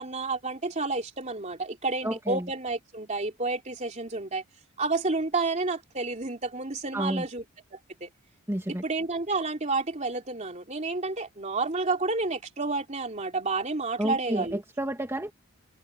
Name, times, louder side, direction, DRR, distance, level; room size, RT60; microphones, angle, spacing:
voice 1, 0.0-4.4 4.8-7.4 7.7-8.1 8.7-14.6, right 3 dB, 35° right, 3.3 m, -30 dB
voice 2, 2.0-2.5 6.9-7.3 8.5-8.8 14.0-15.3, right 1 dB, 15° right, 2.3 m, -30 dB
head